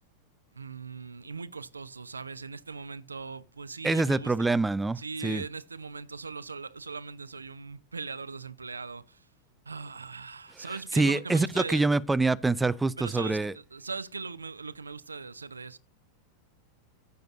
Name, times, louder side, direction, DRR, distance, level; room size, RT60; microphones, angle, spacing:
voice 1, 0.5-4.5 5.0-9.3 9.7-11.8 13.0-15.8, right 4 dB, 75° right, 0.6 m, -40 dB
voice 2, 3.8-5.4 10.9-13.5, right 3 dB, 10° right, 0.4 m, -25 dB
15.0 x 7.8 x 2.6 m
figure-of-eight pair, 90°, 0 cm